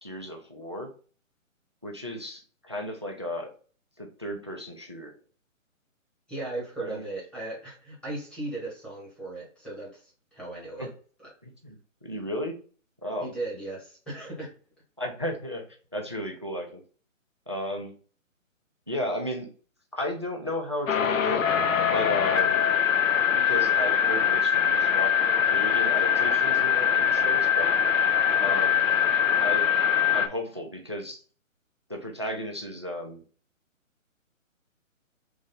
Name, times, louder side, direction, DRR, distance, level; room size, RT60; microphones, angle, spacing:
voice 1, 0.0-0.9 1.8-3.5 4.0-5.2 6.8-7.1 10.8-10.9 11.4-12.5 13.0-13.3 15.0-15.7 15.9-16.8 17.5-17.9 18.9-19.5 19.9-21.5 21.9-22.7 23.3-25.2 25.5-27.7 28.4-28.9 29.4-29.7 30.1-31.2 31.9-33.2, left 1 dB, 25° right, 3 dB, 0.3 m, -34 dB
voice 2, 6.3-10.9 11.2-11.3 13.2-14.5, right 2 dB, ahead, -6 dB, 1.0 m, -37 dB
sound 1, 20.9-30.3, left 8 dB, 75° left, 0.7 m, -23 dB
3.7 x 3.1 x 3.7 m, 0.40 s
hypercardioid pair, 145°, 40 cm